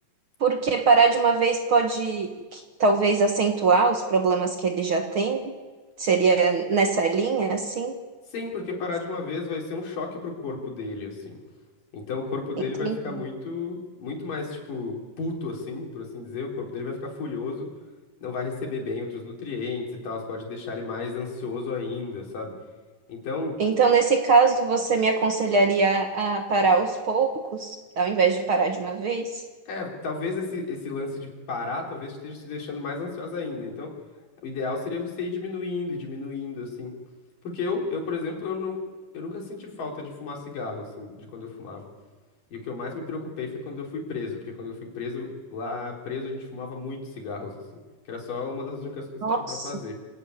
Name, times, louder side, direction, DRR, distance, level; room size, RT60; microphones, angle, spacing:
voice 1, 0.4-5.5 6.0-7.9 12.8-13.0 23.6-29.4 49.2-49.7, right 4 dB, 50° right, 4 dB, 1.8 m, -22 dB
voice 2, 8.3-11.4 11.9-17.7 18.2-22.5 23.1-23.6 29.7-33.9 34.4-36.9 37.4-38.8 39.1-41.9 42.5-47.5 48.1-49.9, left 4 dB, 80° left, 0 dB, 5.5 m, -33 dB
25.5 x 15.0 x 9.6 m, 1.3 s
omnidirectional pair, 3.7 m